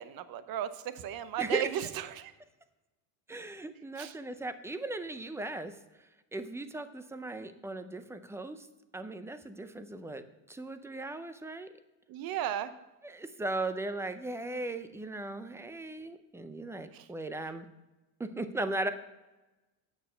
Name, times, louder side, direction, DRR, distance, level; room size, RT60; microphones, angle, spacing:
voice 1, 0.0-2.3 4.0-4.1 12.1-12.7 16.9-17.1, right 11 dB, 50° right, 13 dB, 0.8 m, -35 dB
voice 2, 1.4-1.7 3.3-8.7 8.9-11.7 13.0-17.7 18.2-18.9, right 2 dB, 5° right, 10 dB, 0.4 m, -37 dB
9.2 x 6.5 x 5.5 m, 1.1 s
cardioid pair, 120°, 45 cm